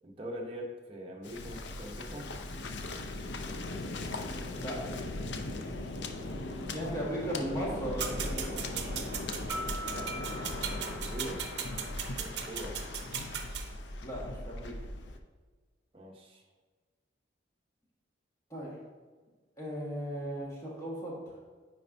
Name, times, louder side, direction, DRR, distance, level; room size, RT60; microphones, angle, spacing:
voice 1, 0.0-2.3 6.2-6.7 9.9-11.4 12.2-12.8 15.9-16.4, equal, 30° right, -1 dB, 1.0 m, -43 dB
Waves surf, 1.2-15.2, left 2 dB, 70° left, 0.5 m, -39 dB
voice 2, 4.3-4.8 6.7-9.3 14.0-14.7 18.5-18.8 19.6-21.4, equal, 15° left, -5 dB, 1.6 m, -37 dB
sound 1, 8.0-13.7, right 8 dB, 65° right, 0.6 m, -38 dB
sound 2, 9.5-12.0, equal, 5° right, 0.7 m, -43 dB
9.3 x 4.4 x 2.7 m, 1.4 s
head